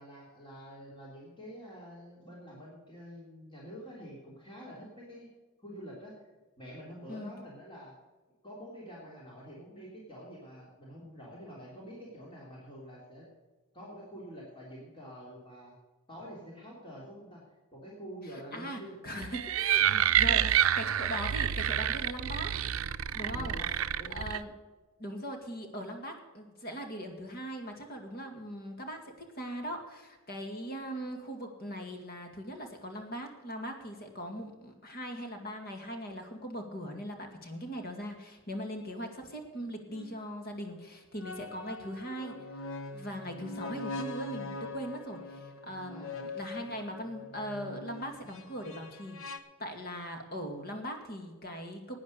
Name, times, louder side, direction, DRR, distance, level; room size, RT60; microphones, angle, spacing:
voice 1, 0.0-5.3 5.6-6.2 6.6-7.9 8.4-13.3 13.7-15.7 16.1-17.4 17.7-19.0 19.9-20.6 23.3-23.7 24.0-24.3 45.9-46.2, equal, 25° left, -4 dB, 3.2 m, -47 dB
voice 2, 18.3-19.9 20.2-22.5 23.1-23.8 24.1-24.5 25.0-49.2 49.6-52.0, equal, 45° left, 4 dB, 2.1 m, -40 dB
sound 1, 19.2-24.4, right 10 dB, 70° right, 0.5 m, -28 dB
sound 2, 39.9-40.1 41.2-49.4, left 2 dB, 70° left, 1.1 m, -42 dB
12.0 x 9.3 x 6.6 m, 1.3 s
head